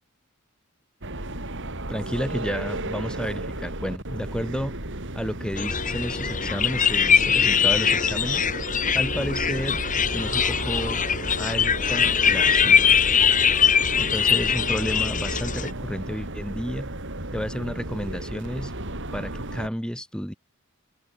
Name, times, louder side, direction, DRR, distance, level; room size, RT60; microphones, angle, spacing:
sound 1, 1.0-19.7, right 1 dB, 60° right, 5.6 m, -34 dB
voice 1, 1.9-4.8 5.1-8.5 8.9-9.8 10.1-11.0 11.4-13.0 14.0-16.9 17.3-18.7 19.1-20.3, equal, 5° left, 7.8 m, -31 dB
sound 2, 5.6-15.7, left 7 dB, 40° left, 2.4 m, -22 dB
open air
head